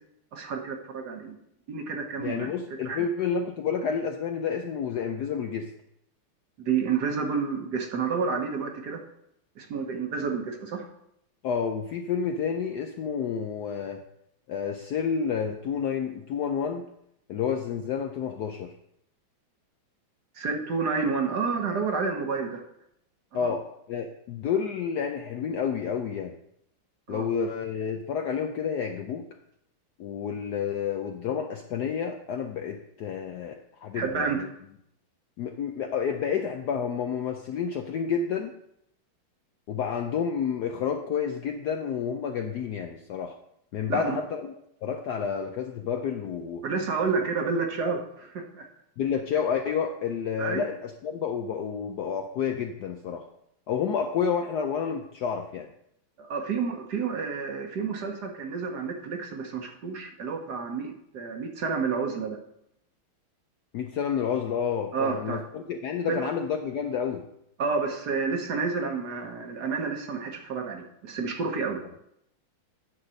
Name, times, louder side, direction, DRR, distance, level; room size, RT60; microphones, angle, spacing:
voice 1, 0.3-1.4 1.7-2.5 2.8-3.1 6.6-9.0 9.6-10.9 20.3-22.6 23.3-23.5 27.1-27.3 33.9-34.4 43.9-44.2 46.6-48.7 50.4-50.6 56.2-62.4 64.9-65.4 66.1-66.3 67.6-71.8, right 5 dB, 55° right, 3 dB, 1.5 m, -30 dB
voice 2, 2.2-5.7 11.4-14.0 14.5-16.8 17.3-18.7 23.3-26.4 27.1-29.3 30.0-34.5 35.4-38.6 39.7-43.4 43.7-44.5 44.8-46.6 49.0-53.3 53.7-55.7 63.7-67.3, left 7 dB, 75° left, 5 dB, 0.9 m, -30 dB
9.9 x 4.1 x 6.3 m, 0.77 s
omnidirectional pair, 2.3 m